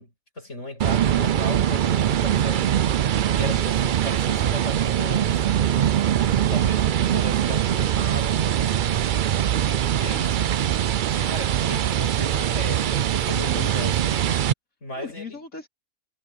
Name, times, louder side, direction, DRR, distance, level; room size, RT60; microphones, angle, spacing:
voice 1, 0.0-2.7 3.3-6.0 6.5-6.9 7.1-9.0 10.0-10.4 11.1-14.2 14.8-15.4, left 1 dB, 55° left, 8.2 m, -37 dB
sound 1, 0.8-14.5, right 10 dB, 70° right, 0.4 m, -22 dB
voice 2, 3.4-3.7 9.5-10.3 13.4-13.7 15.0-15.7, left 3 dB, 75° left, 4.8 m, -41 dB
omnidirectional pair, 1.5 m